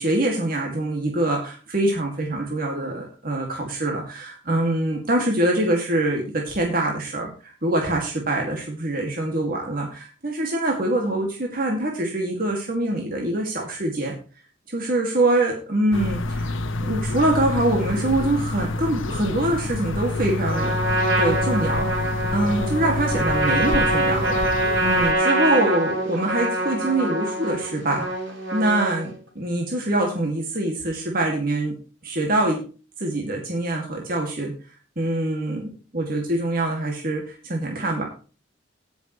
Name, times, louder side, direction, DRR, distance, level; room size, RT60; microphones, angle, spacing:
voice 1, 0.0-14.1 14.7-16.5 16.8-20.7 21.2-24.4 24.8-28.0 28.5-31.7 32.0-32.6 33.0-34.5 35.0-38.0, right 1 dB, 45° right, 0 dB, 2.3 m, -24 dB
sound 1, 15.9-25.1, left 2 dB, 75° left, 1.0 m, -27 dB
Trumpet, 20.5-29.2, right 1 dB, 60° right, 4.9 m, -24 dB
17.5 x 7.1 x 3.2 m, 0.35 s
head